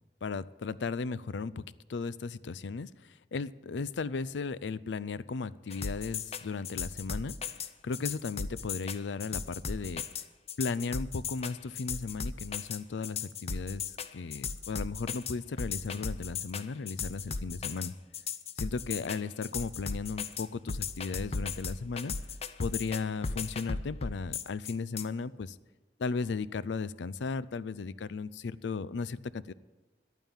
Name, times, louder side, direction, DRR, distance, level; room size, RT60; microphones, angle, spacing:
voice 1, 0.2-1.6 1.9-7.4 7.8-10.0 10.6-17.9 18.6-22.1 22.6-25.6 26.0-29.5, left 4 dB, 90° left, 18 dB, 0.5 m, -36 dB
sound 1, 5.7-25.0, left 5 dB, 35° left, 0.6 m, -36 dB
11.0 x 9.1 x 8.9 m, 1.2 s
head